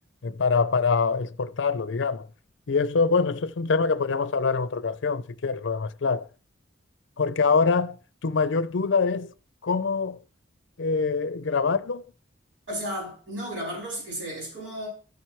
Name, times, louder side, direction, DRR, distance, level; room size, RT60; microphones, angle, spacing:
voice 1, 0.2-2.3 2.7-6.3 7.2-9.3 9.6-10.2 10.8-12.0, left 4 dB, 70° left, 0.5 m, -24 dB
voice 2, 12.7-14.9, equal, 75° right, 5.9 m, -33 dB
13.5 x 4.6 x 4.6 m
head